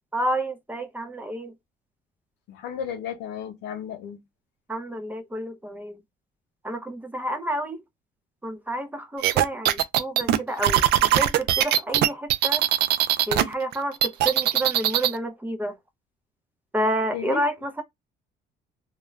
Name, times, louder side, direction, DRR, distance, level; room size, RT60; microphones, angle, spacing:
voice 1, 0.1-1.5 4.7-6.0 6.6-7.8 8.4-10.9 11.2-12.6 13.3-15.8 16.7-17.8, right 1 dB, 10° right, 0.6 m, -29 dB
voice 2, 2.5-4.2 17.1-17.4, left 8 dB, 85° left, 0.8 m, -33 dB
sound 1, 9.2-13.4 13.7-15.2, right 12 dB, 75° right, 0.4 m, -20 dB
2.4 x 2.1 x 3.1 m
cardioid pair, 110°, 17 cm